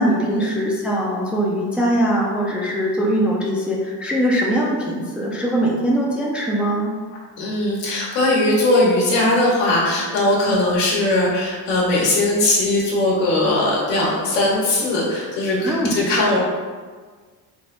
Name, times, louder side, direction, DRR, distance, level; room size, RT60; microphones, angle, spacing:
voice 1, 0.0-6.9 15.6-16.0, equal, 5° right, -3 dB, 0.3 m, -21 dB
voice 2, 7.4-16.4, left 2 dB, 80° left, -4 dB, 1.3 m, -19 dB
3.4 x 2.2 x 3.8 m, 1.5 s
cardioid pair, 110°, 43 cm